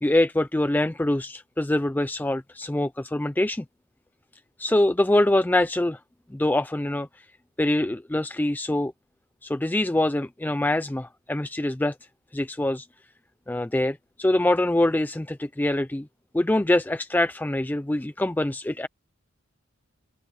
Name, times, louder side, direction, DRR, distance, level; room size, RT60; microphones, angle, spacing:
voice 1, 0.0-3.6 4.6-6.0 6.3-7.1 7.6-8.9 9.4-11.9 12.3-12.9 13.5-16.1 16.3-18.9, left 1 dB, 10° left, 0.4 m, -24 dB
open air
head